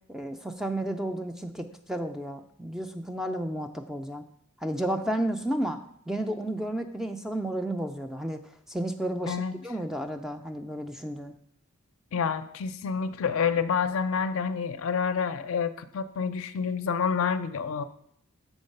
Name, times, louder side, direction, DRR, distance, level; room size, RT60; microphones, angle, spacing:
voice 1, 0.1-4.2 4.6-5.8 6.1-8.4 8.7-11.3, right 1 dB, ahead, 6 dB, 0.3 m, -32 dB
voice 2, 12.1-17.8, left 6 dB, 65° left, 11 dB, 0.4 m, -28 dB
7.1 x 3.8 x 5.3 m, 0.69 s
head